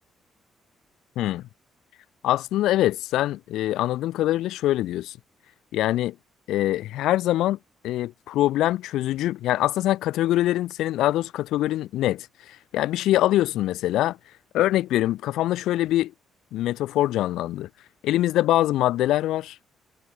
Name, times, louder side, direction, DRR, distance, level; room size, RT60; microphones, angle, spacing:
voice 1, 2.2-5.2 5.7-6.2 6.5-7.6 7.8-14.2 14.5-16.1 16.5-17.7 18.0-19.6, left 14 dB, 85° left, 0.6 m, -24 dB
cardioid pair, 90°, 0 cm